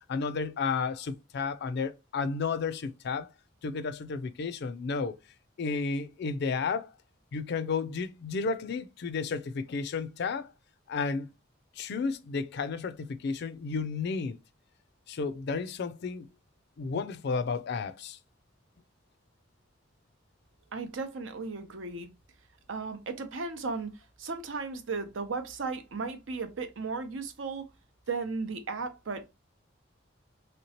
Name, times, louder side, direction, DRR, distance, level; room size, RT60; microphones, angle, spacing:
voice 1, 0.1-3.3 3.6-5.2 5.6-6.9 7.3-10.5 10.9-11.3 11.8-14.4 15.1-16.3 16.8-18.2, left 4 dB, 60° left, 0.4 m, -32 dB
voice 2, 20.7-22.1 22.7-27.7 28.1-29.2, right 4 dB, 80° right, 0.7 m, -35 dB
3.2 x 2.9 x 2.8 m
head